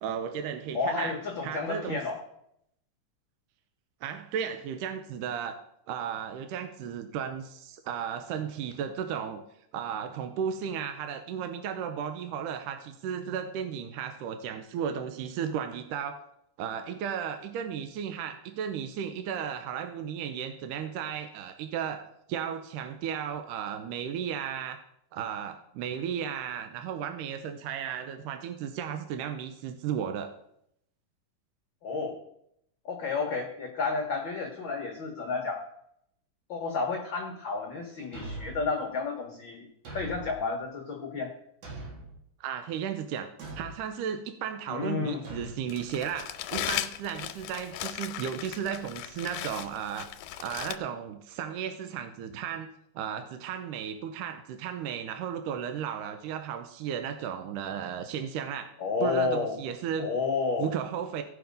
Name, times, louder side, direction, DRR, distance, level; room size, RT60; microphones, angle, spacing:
voice 1, 0.0-1.1 1.4-2.0 4.0-5.6 5.9-9.4 9.7-16.3 16.6-24.8 25.1-30.4 42.4-43.3 43.6-50.1 50.4-58.8 59.0-60.1 60.6-61.2, right 8 dB, 80° right, 7 dB, 2.2 m, -34 dB
voice 2, 0.7-2.2 31.8-32.2 32.8-35.6 36.5-41.3 44.7-45.2 58.8-59.6 60.0-60.7, left 4 dB, 60° left, 1 dB, 1.3 m, -31 dB
Thump thud, 38.1-38.8 39.9-40.4 41.6-42.2 43.4-43.8 45.3-45.6, right 2 dB, 65° right, 3.3 m, -41 dB
Crumpling crinkling, 45.7-50.8, left 13 dB, 85° left, 2.2 m, -37 dB
16.5 x 5.8 x 5.2 m, 0.75 s
omnidirectional pair, 3.8 m